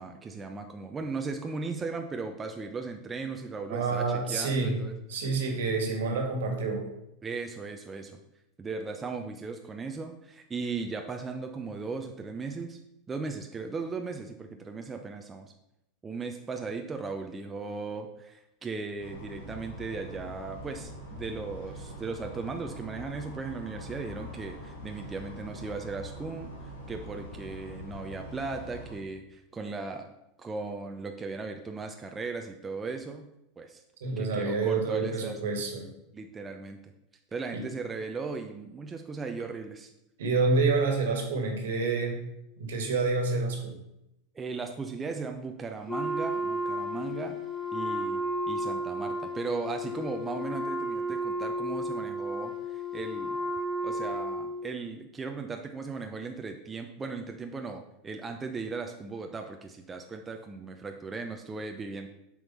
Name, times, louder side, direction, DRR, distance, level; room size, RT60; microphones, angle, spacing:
voice 1, 0.0-4.9 7.2-8.2 8.6-12.8 13.1-15.5 16.0-30.1 30.4-33.2 33.6-33.8 34.2-35.4 36.1-36.9 37.3-39.9 44.3-47.4 47.7-53.4 53.8-62.1, right 4 dB, 20° right, 4 dB, 0.7 m, -37 dB
voice 2, 3.7-4.8 5.1-6.9 34.0-35.9 37.5-37.6 40.2-42.3 42.6-43.7, right 3 dB, 70° right, 3 dB, 1.8 m, -28 dB
sound 1, 19.0-29.0, left 1 dB, 70° left, 1.8 m, -43 dB
Wind instrument woodwind instrument, 45.9-54.7, equal, 20° left, 3.5 m, -33 dB
7.7 x 4.7 x 5.6 m, 0.86 s
figure-of-eight pair, 85°, 0 cm